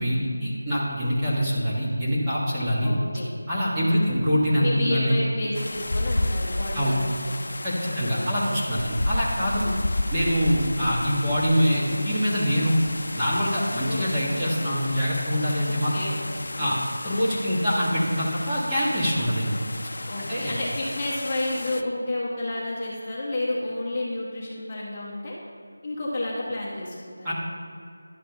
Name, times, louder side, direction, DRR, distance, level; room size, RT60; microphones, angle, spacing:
voice 1, 0.0-2.9 3.5-5.2 6.7-6.9 7.6-9.7 10.1-12.8 13.1-15.9 16.6-16.8 17.0-19.6 20.3-20.5 27.2-27.3, equal, 10° right, -10 dB, 1.4 m, -24 dB
voice 2, 2.8-3.3 3.8-4.2 4.6-7.3 7.8-8.6 13.9-14.1 15.7-16.3 20.1-25.3 25.8-27.3, left 2 dB, 25° left, -6 dB, 1.3 m, -31 dB
sound 1, 5.5-21.8, left 1 dB, 65° left, 0.5 m, -32 dB
11.0 x 7.4 x 3.5 m, 2.4 s
figure-of-eight pair, 170°, 0 cm